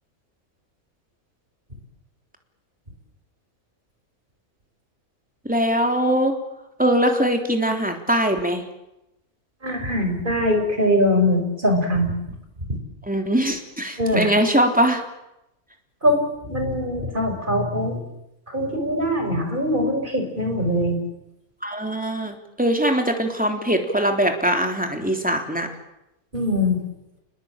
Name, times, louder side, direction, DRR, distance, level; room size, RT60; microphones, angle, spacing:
voice 1, 5.4-6.3 6.8-8.6 13.1-15.0 21.6-25.7, right 1 dB, 5° right, 4 dB, 3.4 m, -21 dB
voice 2, 9.6-12.1 12.7-12.8 14.0-14.3 16.0-18.0 18.5-21.0 26.3-26.8, left 1 dB, 35° right, 4 dB, 5.7 m, -22 dB
30.0 x 20.0 x 9.0 m, 0.90 s
omnidirectional pair, 1.5 m